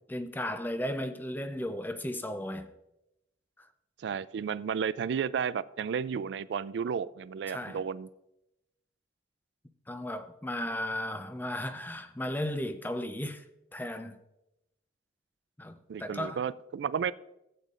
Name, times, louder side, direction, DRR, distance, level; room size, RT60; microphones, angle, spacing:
voice 1, 0.1-2.7 3.6-3.7 7.5-7.8 9.9-13.4 13.7-14.2 15.6-16.4, left 1 dB, 10° left, 0.5 m, -35 dB
voice 2, 4.0-8.1 15.9-17.1, right 7 dB, 65° right, 0.3 m, -32 dB
15.5 x 8.2 x 2.5 m
head